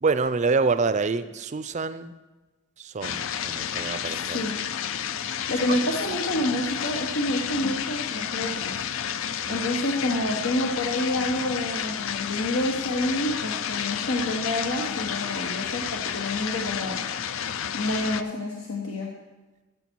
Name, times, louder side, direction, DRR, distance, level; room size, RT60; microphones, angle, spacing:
voice 1, 0.0-2.1 2.8-4.5 9.5-9.6, right 4 dB, 35° right, 12 dB, 0.4 m, -26 dB
sound 1, 3.0-18.2, left 8 dB, 65° left, 0.4 m, -31 dB
voice 2, 4.1-4.6 5.5-8.7 9.5-17.0 17.7-19.1, left 1 dB, 85° left, -1 dB, 1.3 m, -28 dB
13.5 x 7.8 x 4.6 m, 1.2 s
head